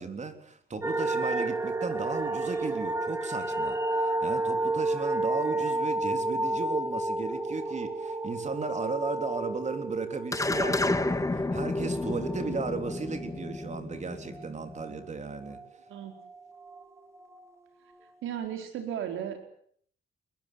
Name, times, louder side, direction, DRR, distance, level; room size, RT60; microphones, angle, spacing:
voice 1, 0.0-15.6, right 4 dB, 35° right, 9 dB, 3.6 m, -35 dB
sound 1, 0.8-15.7 16.0-17.4 17.9-18.0, right 2 dB, 15° right, 2.5 m, -32 dB
sound 2, 10.3-14.9, left 2 dB, 15° left, 1.4 m, -31 dB
voice 2, 18.2-19.5, right 9 dB, 85° right, 6 dB, 4.8 m, -35 dB
22.0 x 21.5 x 9.1 m, 0.62 s
cardioid pair, 90°, 20 cm